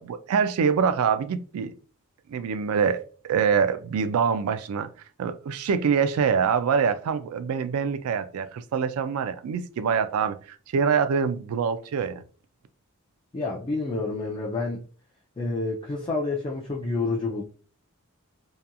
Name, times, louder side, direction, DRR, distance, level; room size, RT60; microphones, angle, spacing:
voice 1, 0.0-1.7 2.3-4.9 5.2-10.4 10.7-12.2, right 6 dB, 80° right, 0.3 m, -25 dB
voice 2, 13.3-14.8 15.4-17.4, left 3 dB, 25° left, 0.4 m, -28 dB
2.8 x 2.4 x 2.2 m
head